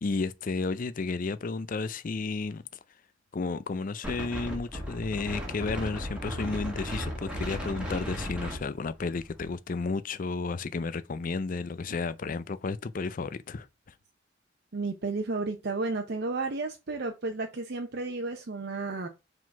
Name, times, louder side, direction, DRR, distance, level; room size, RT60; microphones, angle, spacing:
voice 1, 0.0-2.6 3.3-13.7, left 4 dB, 45° left, 0.4 m, -32 dB
Wind, 4.0-9.5, equal, 5° right, 1.8 m, -36 dB
voice 2, 14.7-19.1, right 3 dB, 55° right, 0.7 m, -32 dB
4.8 x 3.9 x 5.8 m
head